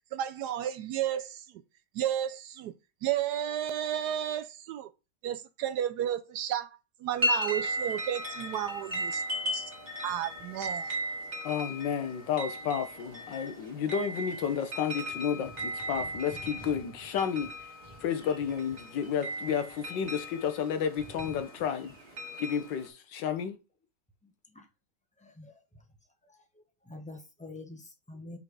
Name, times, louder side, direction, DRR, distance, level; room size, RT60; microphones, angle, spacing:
voice 1, 0.1-1.5 1.9-2.7 3.0-4.9 5.2-6.7 7.0-9.7 10.0-10.9, right 11 dB, 70° right, 1.1 m, -32 dB
sound 1, 7.2-22.9, equal, 30° right, 1.9 m, -37 dB
voice 2, 11.4-17.7 18.0-21.9 22.4-23.6, left 8 dB, 80° left, 1.6 m, -31 dB
voice 3, 25.2-25.6 26.3-26.4 26.9-28.4, left 2 dB, 5° left, 0.8 m, -46 dB
5.7 x 4.0 x 4.8 m
omnidirectional pair, 1.9 m